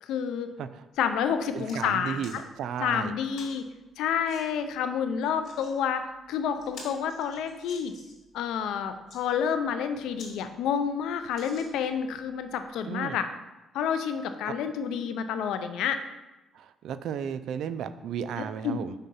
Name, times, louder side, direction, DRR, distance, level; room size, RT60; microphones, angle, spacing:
voice 1, 0.0-0.5 1.0-2.4 2.8-3.7 4.0-8.0 8.3-13.3 13.7-16.0 18.6-18.8, left 7 dB, 85° left, 9 dB, 0.5 m, -29 dB
sound 1, 1.0-1.1 1.4-1.8 2.2-2.4 3.3-3.6 4.3-4.5 5.2-5.7 6.2-6.3 6.6-8.3 8.9-9.2 9.8-9.9 10.2-10.3 10.7-10.8 11.3-12.0 12.7-12.8, left 3 dB, 60° left, 2.3 m, -48 dB
voice 2, 1.5-3.2 12.8-13.2 14.5-14.6 16.5-18.9, right 8 dB, 75° right, 13 dB, 0.3 m, -34 dB
5.7 x 3.6 x 5.4 m, 1.0 s
cardioid pair, 90°, 0 cm